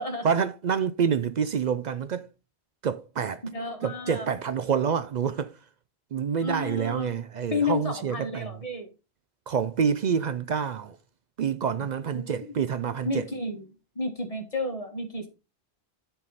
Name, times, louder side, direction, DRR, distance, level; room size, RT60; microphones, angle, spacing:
voice 1, 0.2-2.3 2.8-3.4 3.8-5.5 6.1-8.6 9.5-11.0 11.4-13.3, right 7 dB, 55° right, 0.5 m, -27 dB
voice 2, 3.5-4.3 6.4-7.1 7.5-8.9 12.1-12.5 13.0-13.7 13.9-15.3, left 2 dB, 35° left, 1.6 m, -31 dB
10.5 x 4.6 x 4.0 m
omnidirectional pair, 1.1 m